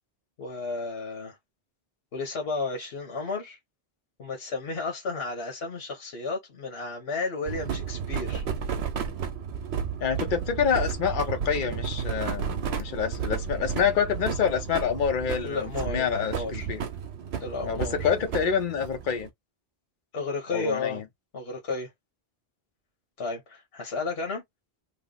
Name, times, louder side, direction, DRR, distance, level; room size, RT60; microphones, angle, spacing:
voice 1, 0.4-1.4 2.1-3.6 4.2-8.4 15.4-16.7 17.4-18.1 20.1-21.0 21.3-21.9 23.2-24.4, left 3 dB, 85° left, 1.3 m, -33 dB
sound 1, 7.5-19.3, right 7 dB, 85° right, 0.9 m, -32 dB
voice 2, 10.0-16.8 17.6-19.3 20.5-21.0, left 7 dB, 55° left, 0.9 m, -27 dB
3.2 x 2.0 x 3.7 m
omnidirectional pair, 1.0 m